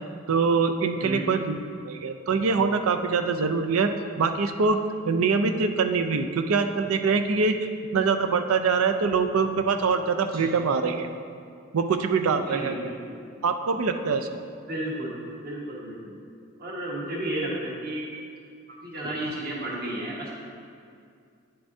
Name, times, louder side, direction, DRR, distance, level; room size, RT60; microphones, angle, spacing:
voice 1, 0.3-1.6 1.9-4.8 5.1-7.6 7.9-11.1 11.7-12.8 13.4-14.3 19.2-19.3, right 5 dB, 90° right, 7 dB, 0.5 m, -24 dB
voice 2, 12.5-13.2 14.7-15.2 15.4-16.1 16.6-18.1 18.8-20.4, right 1 dB, 50° right, -4 dB, 1.4 m, -32 dB
9.2 x 6.7 x 2.7 m, 2.3 s
head